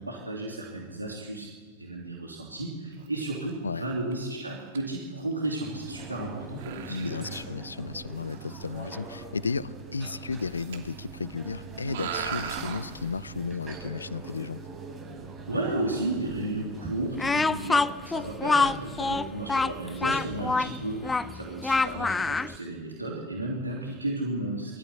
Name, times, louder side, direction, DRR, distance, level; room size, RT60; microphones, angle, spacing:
voice 1, 0.0-1.5 1.8-7.5 15.5-24.8, right 2 dB, 90° right, -2 dB, 3.2 m, -33 dB
sound 1, 2.9-3.2 3.5-3.6 4.1-4.4 4.7-4.8 5.1-5.2 5.3-5.5 6.0-6.2 6.6-7.4 8.1-8.8 10.4-11.0 11.3-11.4 11.8-13.2, right 8 dB, 65° right, 2.8 m, -38 dB
sound 2, 5.6-17.1, right 4 dB, 25° right, 7.5 m, -42 dB
voice 2, 6.9-14.6, left 4 dB, 85° left, 21 dB, 0.6 m, -34 dB
Speech, 17.2-22.5, left 3 dB, 10° left, 0.6 m, -25 dB
22.5 x 13.5 x 8.4 m, 1.5 s
figure-of-eight pair, 95°, 0 cm